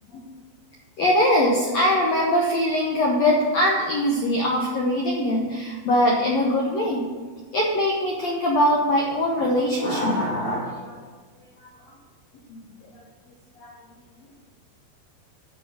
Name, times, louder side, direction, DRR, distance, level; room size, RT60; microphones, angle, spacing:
voice 1, 1.0-7.1 7.5-11.0 11.6-11.7 12.5-12.6 13.6-13.7, left 1 dB, 85° left, -2 dB, 1.5 m, -22 dB
9.3 x 5.6 x 7.7 m, 1.5 s
omnidirectional pair, 4.7 m